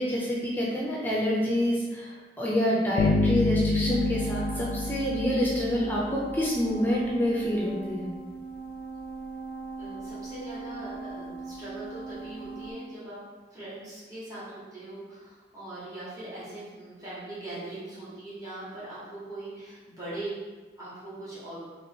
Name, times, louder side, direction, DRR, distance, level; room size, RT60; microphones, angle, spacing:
voice 1, 0.0-8.1, equal, 10° left, -5 dB, 0.5 m, -27 dB
Bass guitar, 3.0-6.1, left 2 dB, 70° left, 0.4 m, -27 dB
sound 1, 3.8-12.7, right 4 dB, 55° right, 0.4 m, -39 dB
voice 2, 9.8-13.2 13.5-20.3 20.8-21.6, right 2 dB, 20° right, -12 dB, 1.4 m, -41 dB
3.0 x 2.9 x 4.3 m, 1.3 s
head